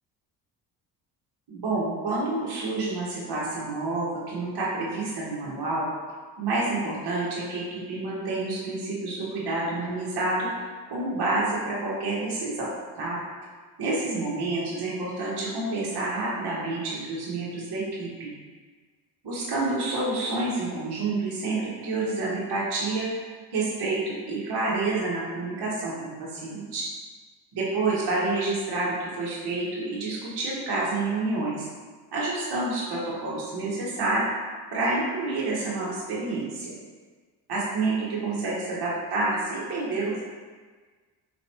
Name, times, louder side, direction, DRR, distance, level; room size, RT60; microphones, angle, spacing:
voice 1, 1.5-5.9 6.4-10.5 10.9-12.7 12.9-13.2 13.8-18.3 19.2-23.2 23.5-26.8 27.5-31.6 32.1-34.2 34.7-36.8 37.5-40.3, right 2 dB, 50° right, -6 dB, 1.5 m, -28 dB
4.4 x 3.0 x 3.0 m, 1.4 s
hypercardioid pair, 55°, 50 cm